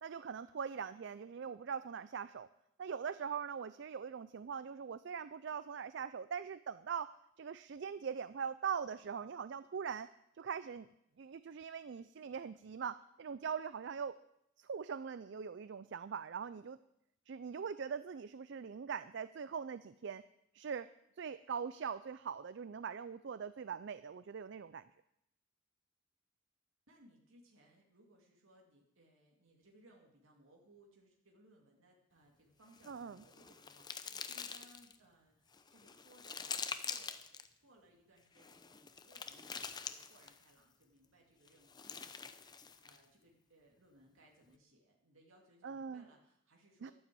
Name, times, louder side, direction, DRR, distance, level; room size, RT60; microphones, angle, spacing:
voice 1, 0.0-2.5 2.8-10.1 10.4-10.9 11.2-14.1 14.6-16.8 17.3-20.2 20.5-20.9 21.2-24.8 32.9-33.2 45.6-46.0 46.8-46.9, right 6 dB, 60° right, 14 dB, 0.4 m, -42 dB
voice 2, 26.9-46.9, right 1 dB, 85° right, -1 dB, 2.6 m, -66 dB
sound 1, 32.7-35.0 35.5-37.5 38.4-40.5 41.5-43.0, left 6 dB, 20° left, 0.6 m, -45 dB
12.0 x 9.4 x 7.7 m, 0.78 s
head